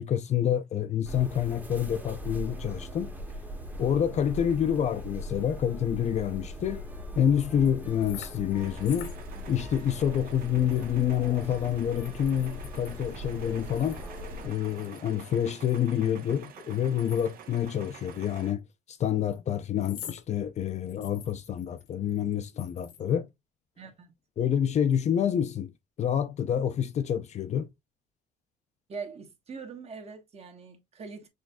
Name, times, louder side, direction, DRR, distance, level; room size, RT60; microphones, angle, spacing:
voice 1, 0.0-3.1 3.8-6.8 7.2-9.1 9.5-14.0 14.4-18.6 18.9-23.3 24.4-25.7 26.0-27.7, left 9 dB, 45° left, 0.4 m, -27 dB
sound 1, 1.1-14.5, equal, 10° right, 0.9 m, -40 dB
sound 2, 7.1-8.5 8.8-9.8 10.2-10.3 10.7-13.2 13.7-15.1 15.4-17.8 18.1-18.2 19.0-19.4 19.8-20.3 20.7-23.1, left 9 dB, 75° left, 1.0 m, -48 dB
sound 3, 8.6-18.5, right 8 dB, 60° right, 0.7 m, -49 dB
voice 2, 23.8-24.1 28.9-31.3, right 5 dB, 40° right, 1.1 m, -42 dB
6.1 x 2.6 x 2.2 m
cardioid pair, 110°, 17 cm